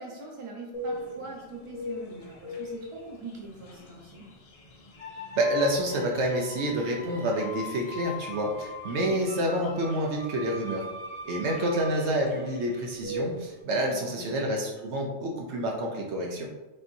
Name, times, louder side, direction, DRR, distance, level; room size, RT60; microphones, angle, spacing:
voice 1, 0.0-4.3 13.9-14.5, right 2 dB, 30° right, -2 dB, 0.8 m, -42 dB
sound 1, 0.7-13.6, left 1 dB, 65° left, 0.3 m, -42 dB
sound 2, 5.0-12.9, left 2 dB, 85° left, 1.4 m, -42 dB
voice 2, 5.4-10.9 11.3-16.5, right 1 dB, 70° right, 0 dB, 0.9 m, -28 dB
5.2 x 2.8 x 2.6 m, 1.1 s
omnidirectional pair, 1.2 m